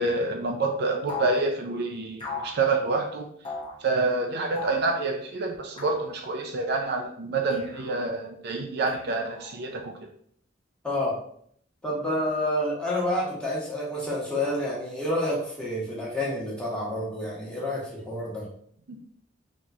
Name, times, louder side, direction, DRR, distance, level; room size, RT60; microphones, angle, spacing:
voice 1, 0.0-3.3 3.8-9.9, right 3 dB, 60° right, 2 dB, 0.5 m, -27 dB
sound 1, 1.1-1.4 2.2-2.6 3.4-3.8 4.6-4.9 5.8-6.1 7.5-8.0 8.9-9.6, left 4 dB, 30° left, 0.8 m, -37 dB
voice 2, 10.8-11.2 11.8-18.4, left 1 dB, 5° left, -6 dB, 1.2 m, -29 dB
4.0 x 2.9 x 2.4 m, 0.64 s
head